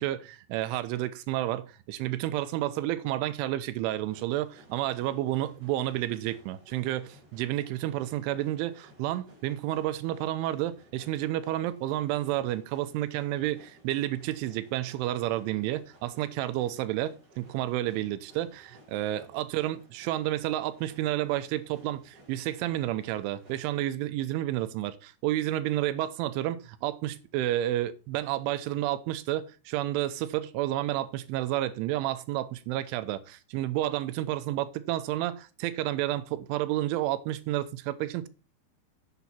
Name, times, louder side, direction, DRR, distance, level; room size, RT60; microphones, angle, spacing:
voice 1, 0.0-38.3, right 14 dB, 90° right, 3.3 m, -30 dB
sound 1, 4.0-23.9, right 1 dB, 25° right, 2.6 m, -57 dB
8.1 x 8.1 x 4.3 m
omnidirectional pair, 5.4 m